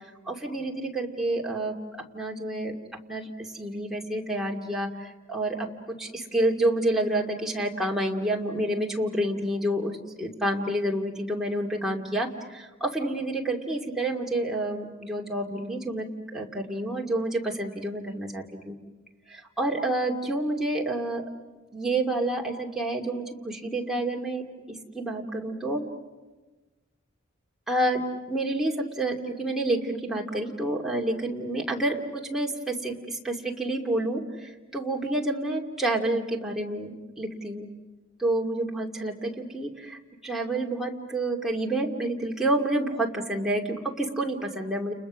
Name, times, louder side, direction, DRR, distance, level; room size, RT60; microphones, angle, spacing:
voice 1, 0.3-1.7 2.1-2.7 3.1-18.7 19.3-21.3 21.7-25.9 27.7-28.0 28.3-37.7 38.2-44.9, right 1 dB, ahead, -1 dB, 2.4 m, -29 dB
30.0 x 30.0 x 6.3 m, 1.2 s
head